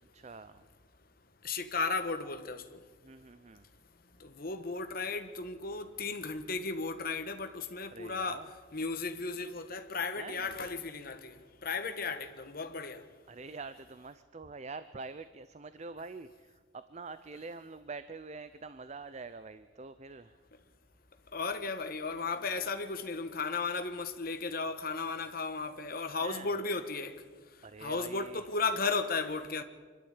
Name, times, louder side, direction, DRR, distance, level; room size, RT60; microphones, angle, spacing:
voice 1, 0.1-0.6 3.0-3.6 7.9-8.5 10.2-10.6 13.3-20.4 26.2-26.5 27.6-28.5, right 4 dB, 35° right, 0.5 m, -45 dB
voice 2, 1.4-2.8 4.2-8.5 8.7-13.0 21.3-27.2 27.8-29.6, left 4 dB, 50° left, 1.4 m, -35 dB
26.0 x 11.5 x 8.9 m
head